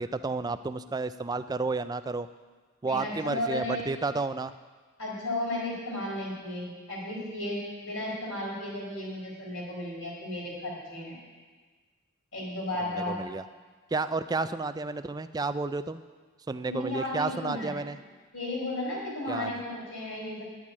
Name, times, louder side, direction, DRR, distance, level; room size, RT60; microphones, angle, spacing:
voice 1, 0.0-2.3 2.8-4.5 12.9-13.4 13.9-16.0 16.5-18.0 19.3-19.6, right 3 dB, 15° right, 12 dB, 0.3 m, -31 dB
voice 2, 2.8-3.9 5.0-11.2 12.3-13.2 16.7-17.8 18.3-20.5, left 1 dB, 65° left, -3 dB, 4.5 m, -34 dB
10.5 x 7.4 x 9.5 m, 1.4 s
head